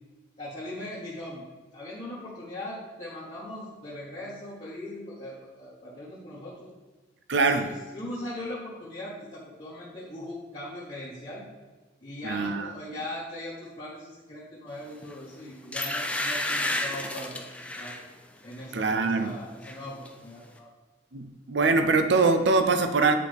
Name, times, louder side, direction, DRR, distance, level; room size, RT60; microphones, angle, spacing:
voice 1, 0.4-1.4 1.7-6.7 7.4-11.4 12.0-17.5 17.8-18.0 18.4-20.7, left 1 dB, 35° left, -8 dB, 1.3 m, -39 dB
voice 2, 7.3-7.7 12.2-12.7 18.7-19.4 21.1-23.1, right 3 dB, 65° right, 7 dB, 0.6 m, -23 dB
sound 1, 15.0-15.2 15.7-18.0 18.5-18.7 19.0-19.8 20.0-20.1, left 1 dB, 5° left, 0.5 m, -31 dB
8.6 x 4.9 x 3.5 m, 1.3 s
head